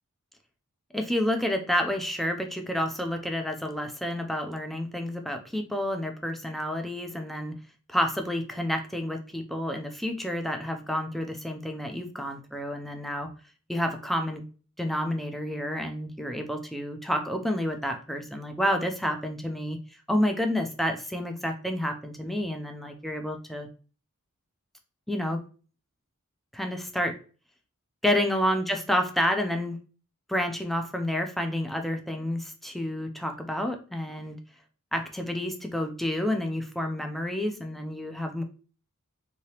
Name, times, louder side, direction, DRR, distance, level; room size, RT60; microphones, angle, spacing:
voice 1, 0.9-7.5 7.9-13.3 13.7-14.4 14.8-19.8 20.1-23.7 25.1-25.4 26.5-27.2 28.0-29.8 30.3-34.4 34.9-38.4, left 1 dB, ahead, 5 dB, 0.4 m, -29 dB
3.2 x 2.8 x 2.8 m, 0.37 s
head